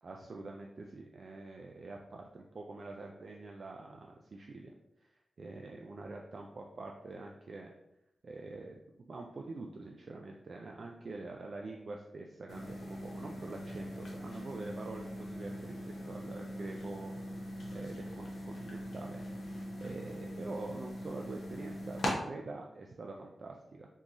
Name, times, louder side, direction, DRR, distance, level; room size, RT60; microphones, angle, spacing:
voice 1, 0.0-4.7 5.4-7.7 8.2-8.8 9.1-15.8 16.0-17.1 17.7-19.2 19.5-23.9, right 3 dB, 55° right, 1 dB, 0.3 m, -45 dB
sound 1, 12.5-22.1, equal, 85° left, 0.8 m, -41 dB
3.7 x 2.9 x 2.5 m, 0.85 s
wide cardioid pair, 115°, 0 cm